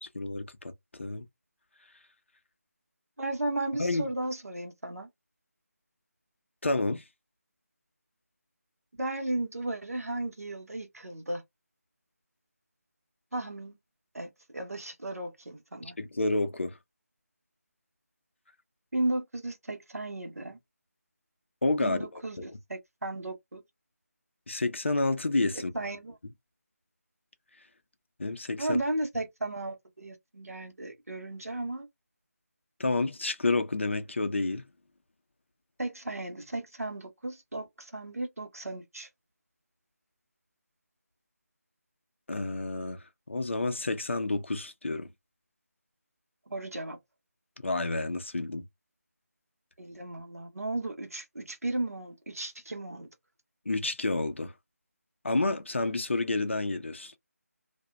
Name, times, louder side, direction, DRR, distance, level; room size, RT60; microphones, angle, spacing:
voice 1, 0.0-0.7 1.0-1.3 3.8-4.1 6.6-7.0 16.0-16.8 21.6-22.0 24.5-25.7 28.2-28.8 32.8-34.6 42.3-45.1 47.6-48.7 53.7-54.5 55.2-57.1, left 2 dB, 50° left, 0.5 m, -29 dB
voice 2, 3.2-5.1 9.0-11.4 13.3-13.8 14.1-16.0 18.9-20.6 21.8-23.6 25.7-26.1 28.6-31.8 35.8-39.1 46.5-47.0 49.8-53.1, right 2 dB, 65° right, 0.8 m, -35 dB
2.7 x 2.1 x 2.2 m
figure-of-eight pair, 160°, 9 cm